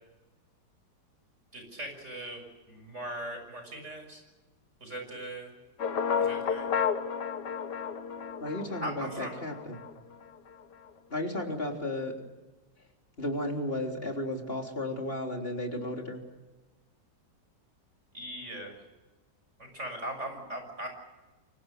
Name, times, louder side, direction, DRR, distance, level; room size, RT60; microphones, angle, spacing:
voice 1, 1.5-4.2 4.8-5.5 6.1-6.7 8.8-9.4 18.1-18.7 19.6-20.9, right 1 dB, 40° right, 4 dB, 6.8 m, -39 dB
sound 1, 5.8-10.0, left 7 dB, 70° left, 2.0 m, -32 dB
voice 2, 8.4-9.8 11.1-12.1 13.2-16.2, left 1 dB, 30° left, 2 dB, 3.9 m, -34 dB
30.0 x 24.0 x 6.6 m, 1.2 s
omnidirectional pair, 1.9 m